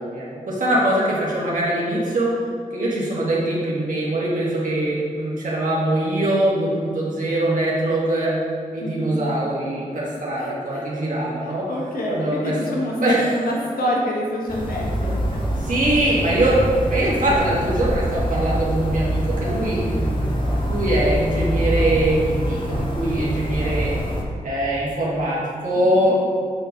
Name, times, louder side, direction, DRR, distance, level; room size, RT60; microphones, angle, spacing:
voice 1, 0.0-2.3 2.7-8.3 8.7-11.6 12.1-12.6 13.0-13.5 15.6-23.9 24.4-26.2, right 1 dB, 65° right, -6 dB, 1.9 m, -22 dB
voice 2, 8.8-9.4 10.4-10.9 11.4-15.4 25.8-26.1, left 1 dB, 85° left, -2 dB, 1.5 m, -27 dB
sound 1, 14.5-24.2, equal, 35° left, 1.5 m, -24 dB
7.9 x 4.5 x 5.3 m, 2.2 s
cardioid pair, 60°, 15 cm